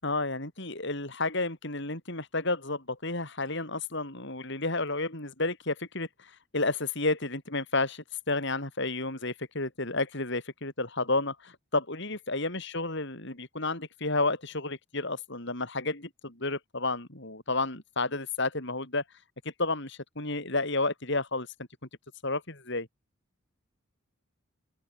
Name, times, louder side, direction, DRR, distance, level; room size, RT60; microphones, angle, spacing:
voice 1, 0.0-19.0 19.6-21.5 22.2-22.9, left 2 dB, 60° left, 6.6 m, -31 dB
open air
head